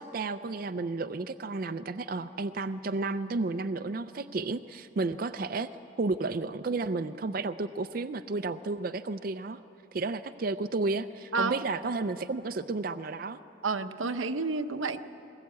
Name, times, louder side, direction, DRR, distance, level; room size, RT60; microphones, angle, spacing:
voice 1, 0.0-5.7 6.0-9.6 9.9-13.4, right 3 dB, 45° right, 10 dB, 0.4 m, -32 dB
voice 2, 13.6-15.0, right 4 dB, 90° right, 9 dB, 0.8 m, -30 dB
21.5 x 19.0 x 8.4 m, 2.9 s
head